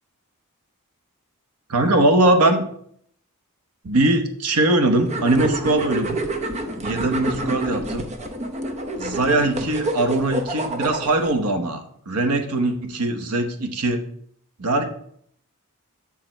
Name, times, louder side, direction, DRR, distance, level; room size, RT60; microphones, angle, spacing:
voice 1, 1.7-2.6 3.8-6.2 6.8-8.1 9.0-14.0 14.6-14.9, right 2 dB, 80° right, 6 dB, 1.0 m, -21 dB
sound 1, 5.0-11.3, right 1 dB, 30° right, 0.7 m, -28 dB
7.0 x 4.9 x 4.4 m, 0.66 s
head